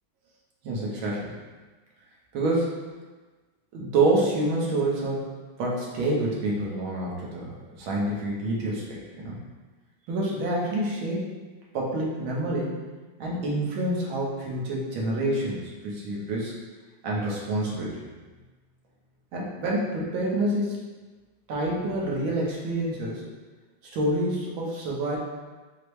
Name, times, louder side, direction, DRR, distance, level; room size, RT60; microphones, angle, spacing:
voice 1, 0.6-1.4 2.3-2.7 3.7-5.3 5.6-9.4 10.1-11.3 11.7-12.8 13.2-16.5 17.0-18.0 19.3-20.8 21.5-23.2 23.9-25.2, right 1 dB, 75° right, -4 dB, 1.7 m, -27 dB
4.9 x 2.1 x 4.6 m, 1.3 s
omnidirectional pair, 2.3 m